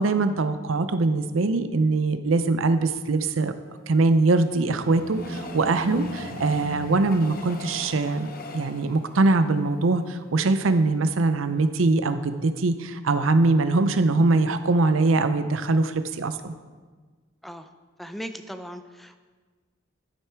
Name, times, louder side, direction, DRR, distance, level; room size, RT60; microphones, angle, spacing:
voice 1, 0.0-3.5 3.9-16.5, right 3 dB, 90° right, 10 dB, 0.6 m, -22 dB
Train, 3.4-10.7 11.2-11.3 11.5-11.6, left 2 dB, 45° left, 0.8 m, -43 dB
sound 1, 4.8-7.8, right 1 dB, 45° right, 1.3 m, -37 dB
voice 2, 18.0-19.2, equal, ahead, 8 dB, 0.5 m, -38 dB
9.8 x 9.2 x 4.6 m, 1.4 s
head